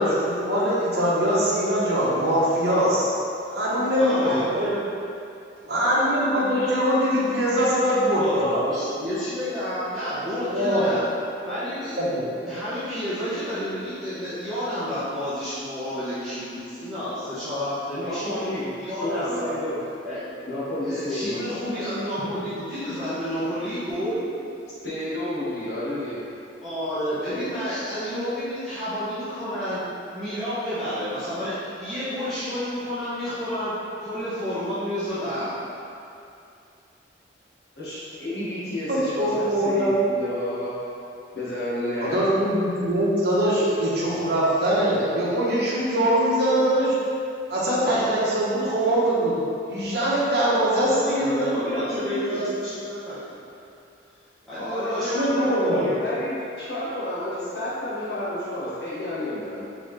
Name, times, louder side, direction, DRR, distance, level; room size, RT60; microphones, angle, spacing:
voice 1, 0.0-3.1 3.5-4.7 5.6-8.6 10.5-10.9 12.0-12.4 38.9-40.0 42.0-46.9 47.5-49.4 49.7-52.4 55.1-55.9, equal, 55° right, -7 dB, 0.9 m, -22 dB
voice 2, 3.9-4.8 8.2-11.0 11.4-12.1 12.4-18.4 18.8-19.5 20.0-20.2 20.8-24.2 26.6-29.8 30.1-35.5 51.0-53.3 54.5-56.0, equal, ahead, -17 dB, 1.1 m, -30 dB
voice 3, 17.9-18.7 19.0-19.8 20.5-21.4 24.8-26.2 37.8-40.8 41.3-42.2 54.6-59.7, left 1 dB, 60° left, -10 dB, 1.2 m, -30 dB
3.8 x 3.7 x 3.2 m, 2.6 s
head